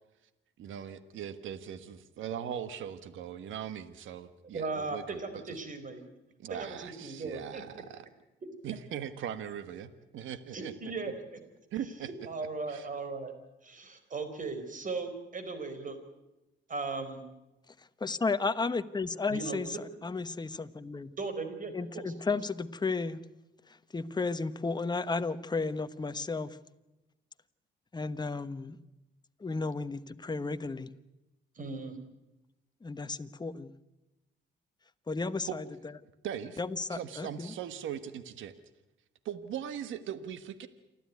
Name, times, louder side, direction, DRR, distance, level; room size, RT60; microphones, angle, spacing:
voice 1, 0.6-5.2 5.5-5.6 6.4-8.0 8.6-10.9 11.7-12.1 12.7-12.9 35.5-35.6 36.2-36.6 36.9-38.5 39.2-40.7, right 9 dB, 75° right, 12 dB, 1.4 m, -40 dB
voice 2, 4.5-6.0 6.5-7.8 10.5-11.4 12.3-13.3 13.6-16.0 16.7-17.2 19.3-19.6 21.2-22.4 31.5-32.0, right 3 dB, 40° right, 9 dB, 4.5 m, -37 dB
voice 3, 18.0-19.7 20.0-21.1 21.7-23.2 23.9-26.5 27.9-28.8 29.4-30.9 32.8-33.7 35.1-35.6 36.6-37.5, left 4 dB, 20° left, 11 dB, 1.1 m, -33 dB
28.5 x 12.5 x 9.5 m, 1.0 s
cardioid pair, 90°, 20 cm